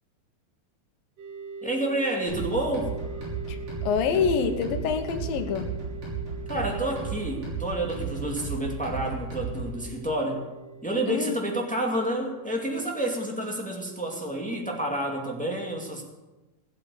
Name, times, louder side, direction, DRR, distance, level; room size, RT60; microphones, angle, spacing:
sound 1, 1.2-15.1, right 4 dB, 50° right, 2.8 m, -44 dB
voice 1, 1.6-2.9 6.5-10.5 10.8-16.0, right 1 dB, 5° left, 0 dB, 1.2 m, -29 dB
sound 2, 2.3-9.8, right 4 dB, 70° right, 7.7 m, -34 dB
voice 2, 3.5-5.7 11.1-11.4, left 6 dB, 80° left, 7 dB, 2.9 m, -26 dB
17.0 x 8.4 x 8.2 m, 1.1 s
omnidirectional pair, 4.1 m